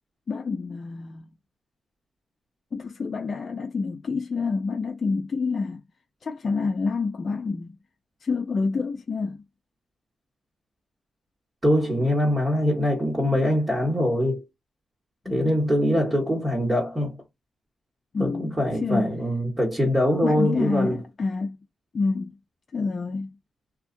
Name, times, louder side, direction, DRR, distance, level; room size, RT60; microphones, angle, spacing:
voice 1, 0.3-1.3 2.7-5.8 6.2-7.8 8.2-9.4 15.3-15.7 18.1-19.1 20.2-21.6 21.9-22.4 22.7-23.3, left 4 dB, 55° left, 0.4 m, -28 dB
voice 2, 11.6-14.4 15.3-17.2 18.2-21.0, equal, 25° right, 1.4 m, -23 dB
2.6 x 2.4 x 2.5 m
supercardioid pair, 50°, 0 cm